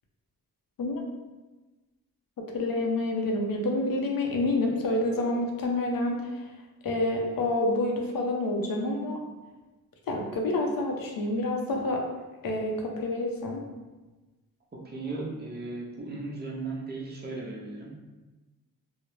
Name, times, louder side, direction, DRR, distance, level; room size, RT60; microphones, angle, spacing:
voice 1, 2.5-6.3 6.8-9.2 10.1-12.0 12.4-13.6, left 2 dB, 65° left, 1 dB, 0.6 m, -28 dB
voice 2, 14.8-17.9, right 3 dB, 25° right, -3 dB, 0.6 m, -36 dB
2.5 x 2.0 x 3.0 m, 1.2 s
cardioid pair, 75°, 38 cm